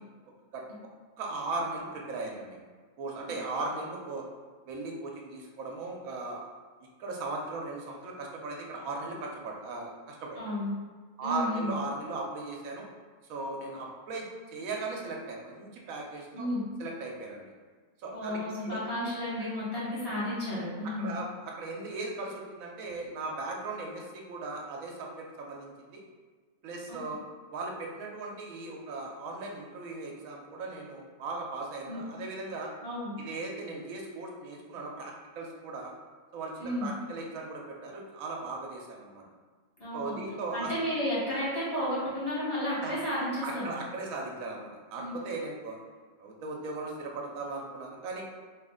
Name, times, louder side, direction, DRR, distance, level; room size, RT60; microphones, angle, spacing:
voice 1, 1.2-2.6 3.0-4.2 4.7-6.5 7.0-10.4 11.2-12.9 13.3-14.3 14.5-16.5 16.8-17.5 18.0-18.4 18.6-18.8 21.0-25.1 25.4-26.0 26.6-27.2 27.5-32.7 33.2-35.9 36.3-39.2 39.9-40.7 42.8-42.9 43.4-45.8 46.2-48.2, right 3 dB, 80° right, 0 dB, 1.0 m, -37 dB
voice 2, 10.4-10.7 11.2-11.7 16.3-16.6 18.1-21.1 26.9-27.0 31.9-32.0 32.8-33.1 36.6-36.9 39.8-40.2 40.5-43.7 45.0-45.1, left 1 dB, 30° left, -10 dB, 1.0 m, -32 dB
3.1 x 2.4 x 3.6 m, 1.5 s
omnidirectional pair, 1.4 m